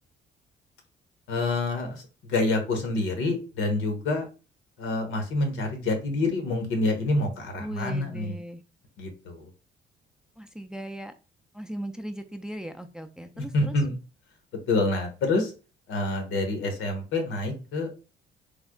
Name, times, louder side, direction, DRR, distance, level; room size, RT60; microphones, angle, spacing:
voice 1, 1.3-4.3 4.8-8.4 9.0-9.5 13.4-13.9 14.7-15.5 15.9-18.0, left 2 dB, 85° left, 5 dB, 1.1 m, -27 dB
voice 2, 7.6-8.6 10.4-11.1 11.5-13.7, right 1 dB, 5° right, 8 dB, 0.4 m, -37 dB
3.4 x 2.1 x 3.6 m, 0.33 s
cardioid pair, 90°, 20 cm